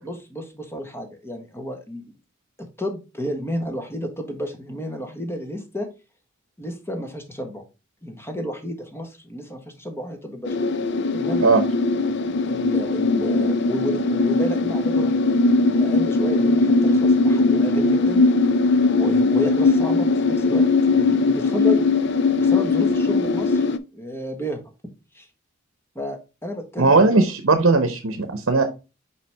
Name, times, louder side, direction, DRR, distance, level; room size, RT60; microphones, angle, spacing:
voice 1, 0.0-2.0 2.6-5.9 6.6-7.6 8.0-10.5 11.1-11.5 12.4-15.5 15.8-18.2 18.8-21.9 22.4-23.6 23.9-24.6 25.1-25.3 25.9-27.2, equal, 10° left, 5 dB, 1.2 m, -31 dB
sound 1, 10.5-23.8, left 3 dB, 55° left, 0.5 m, -20 dB
voice 2, 26.8-28.6, right 3 dB, 70° right, 8 dB, 0.8 m, -18 dB
5.7 x 4.8 x 3.4 m, 0.29 s
head